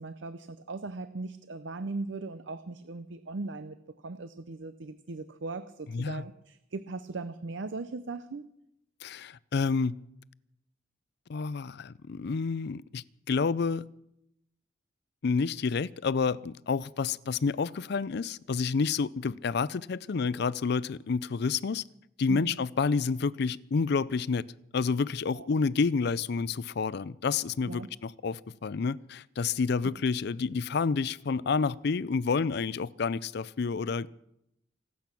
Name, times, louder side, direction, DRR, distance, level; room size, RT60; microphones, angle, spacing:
voice 1, 0.0-3.8 4.0-8.5 22.3-22.5 25.3-25.5 27.7-27.9, right 3 dB, 70° right, 0.6 m, -38 dB
voice 2, 5.9-6.3 9.0-10.0 11.3-13.8 15.2-21.8 22.2-24.4 24.7-34.1, left 5 dB, 60° left, 0.5 m, -29 dB
26.0 x 8.6 x 6.0 m
head